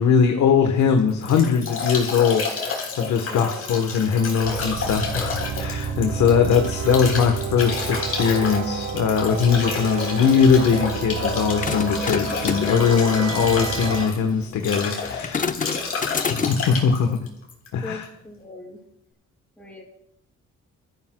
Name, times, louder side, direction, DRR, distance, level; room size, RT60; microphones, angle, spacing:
voice 1, 0.0-15.5 16.1-17.2 17.7-18.1, left 6 dB, 70° left, 4 dB, 1.2 m, -21 dB
Bathtub (filling or washing) / Drip / Trickle dribble, 0.8-18.0, left 4 dB, 50° left, 3.6 m, -30 dB
voice 2, 3.3-3.8 17.8-18.8 19.6-19.8, left 2 dB, 5° left, -4 dB, 5.8 m, -38 dB
sound 1, 4.4-14.1, right 6 dB, 75° right, 1.2 m, -31 dB
sound 2, 11.3-16.8, left 5 dB, 25° left, 0.6 m, -30 dB
25.0 x 13.5 x 2.2 m, 0.76 s
cardioid pair, 90°, 30 cm